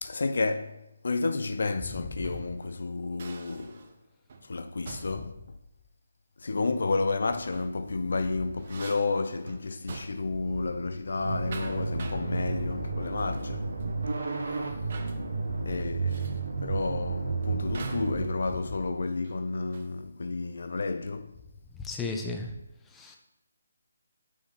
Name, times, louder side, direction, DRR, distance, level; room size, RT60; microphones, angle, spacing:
voice 1, 0.0-3.9 4.4-5.3 6.4-13.7 15.6-21.3, left 3 dB, 65° left, 0.5 m, -31 dB
sound 1, 2.2-2.5 3.2-4.0 4.3-4.5 4.8-5.3 7.3-7.8 8.2-10.4 10.7-11.0 11.3-12.3 13.2-13.5 13.8-13.9 14.9-15.2 16.1-16.4 17.7-18.2 19.2-20.0, right 4 dB, 45° right, 0.9 m, -46 dB
sound 2, 11.2-18.3, right 3 dB, 65° right, 1.3 m, -32 dB
voice 2, 21.7-22.5 22.9-23.2, left 3 dB, 10° left, 0.7 m, -35 dB
6.5 x 5.4 x 3.9 m
figure-of-eight pair, 150°, 0 cm